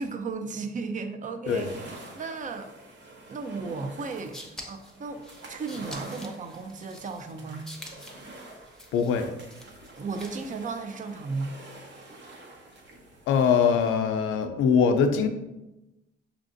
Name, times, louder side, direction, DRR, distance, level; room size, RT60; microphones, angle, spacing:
voice 1, 0.0-1.7 2.1-2.7 3.3-7.6 10.0-11.6, right 4 dB, 40° right, 7 dB, 0.5 m, -35 dB
sound 1, 1.4-14.0, right 2 dB, 65° right, 1.0 m, -47 dB
sound 2, 4.0-10.6, left 1 dB, 5° left, 0.7 m, -47 dB
voice 2, 8.9-9.3 13.3-15.3, left 6 dB, 85° left, 7 dB, 0.5 m, -22 dB
5.6 x 2.5 x 2.5 m, 0.96 s
cardioid pair, 90°, 20 cm